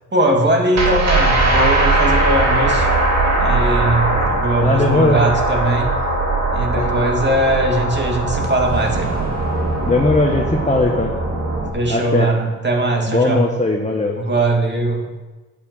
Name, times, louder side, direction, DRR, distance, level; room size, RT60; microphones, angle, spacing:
voice 1, 0.1-2.9 3.4-5.9 6.5-9.3 11.7-13.4 14.2-15.2, right 1 dB, 35° right, 1 dB, 2.7 m, -20 dB
sound 1, 0.7-11.7, right 2 dB, 60° right, 2.6 m, -19 dB
voice 2, 4.6-5.2 6.8-6.9 9.8-11.1 11.9-12.3 13.1-14.1, left 2 dB, 20° left, 0 dB, 1.5 m, -18 dB
8.5 x 8.5 x 7.9 m, 1.3 s
supercardioid pair, 50°, 30 cm